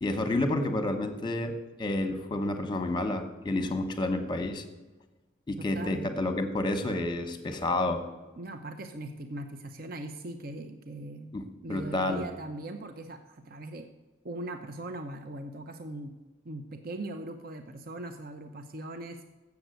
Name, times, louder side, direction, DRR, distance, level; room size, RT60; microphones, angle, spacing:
voice 1, 0.0-1.5 1.8-4.6 5.5-8.0 11.3-12.2, left 2 dB, 20° left, 7 dB, 0.9 m, -30 dB
voice 2, 5.6-6.1 8.4-11.3 11.6-13.9 14.2-16.1 16.4-19.2, right 1 dB, 45° right, 7 dB, 0.6 m, -40 dB
8.0 x 7.0 x 7.7 m, 1.2 s
head